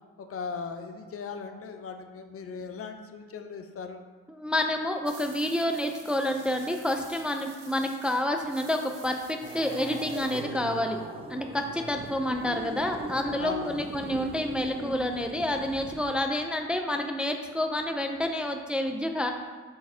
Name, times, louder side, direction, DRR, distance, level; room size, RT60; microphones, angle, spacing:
voice 1, 0.2-4.0 13.4-13.9, left 5 dB, 50° left, 7 dB, 0.6 m, -38 dB
voice 2, 4.3-11.0 11.3-19.3, left 1 dB, 5° right, 4 dB, 0.4 m, -29 dB
sound 1, 5.1-10.4, right 5 dB, 85° right, 1.0 m, -50 dB
sound 2, 9.4-16.2, right 1 dB, 20° right, 1.0 m, -39 dB
7.7 x 4.5 x 2.7 m, 1.4 s
cardioid pair, 90°, 30 cm